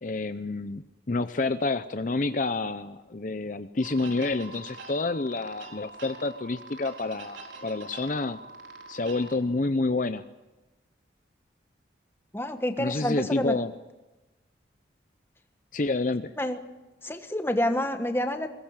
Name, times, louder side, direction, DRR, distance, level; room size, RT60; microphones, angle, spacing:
voice 1, 0.0-8.4 8.9-10.2 12.8-13.7 15.7-16.3, left 3 dB, 45° left, 11 dB, 0.7 m, -28 dB
sound 1, 3.8-9.4, right 3 dB, 80° right, 4.2 m, -44 dB
voice 2, 12.3-13.6 16.4-16.6 17.0-18.5, left 1 dB, 10° left, 7 dB, 1.4 m, -28 dB
21.5 x 18.5 x 8.9 m, 1.1 s
head